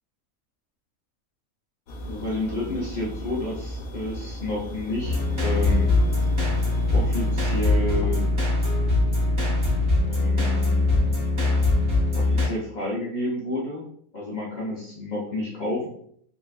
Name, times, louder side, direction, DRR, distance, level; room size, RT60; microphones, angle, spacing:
sound 1, 1.9-7.6, equal, 85° left, 1.1 m, -36 dB
voice 1, 2.0-5.9 6.9-8.3 10.0-11.1 12.1-13.8 14.1-15.9, left 1 dB, 60° left, -4 dB, 0.4 m, -30 dB
sound 2, 5.0-12.5, left 2 dB, 25° right, 1.0 m, -22 dB
3.7 x 2.3 x 2.4 m, 0.66 s
omnidirectional pair, 1.5 m